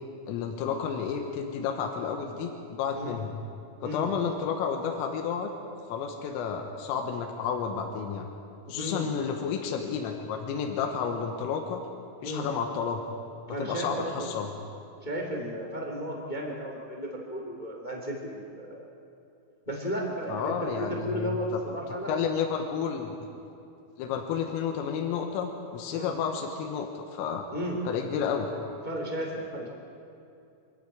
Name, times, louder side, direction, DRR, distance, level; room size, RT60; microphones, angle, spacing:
voice 1, 0.3-3.3 3.8-5.5 5.9-8.3 8.7-11.8 12.2-13.0 13.6-14.5 20.3-21.4 22.1-23.2 24.0-27.5 27.9-28.5, left 7 dB, 90° left, 3 dB, 3.9 m, -31 dB
voice 2, 8.7-9.1 12.2-12.5 13.5-14.3 15.0-18.8 19.6-22.1 25.9-26.2 27.5-27.8 28.8-29.7, equal, 20° left, 0 dB, 1.2 m, -34 dB
25.5 x 13.5 x 8.6 m, 2.6 s
omnidirectional pair, 5.7 m